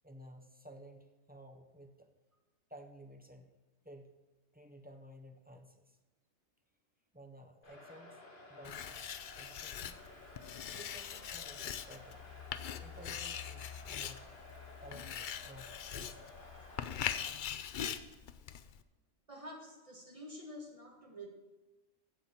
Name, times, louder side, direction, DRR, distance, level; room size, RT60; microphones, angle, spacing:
voice 1, 0.0-2.1 2.7-3.5 3.8-4.1 4.5-6.0 7.1-8.2 8.5-10.0 10.7-12.2 12.8-14.3 14.8-16.3, equal, 10° right, 3 dB, 0.6 m, -54 dB
sound 1, 7.6-17.3, left 2 dB, 45° left, 2.0 m, -55 dB
Writing, 8.6-18.8, left 9 dB, 60° left, 0.5 m, -42 dB
voice 2, 19.3-21.3, equal, 30° right, 1 dB, 1.5 m, -48 dB
15.0 x 7.1 x 4.4 m, 1.2 s
omnidirectional pair, 1.3 m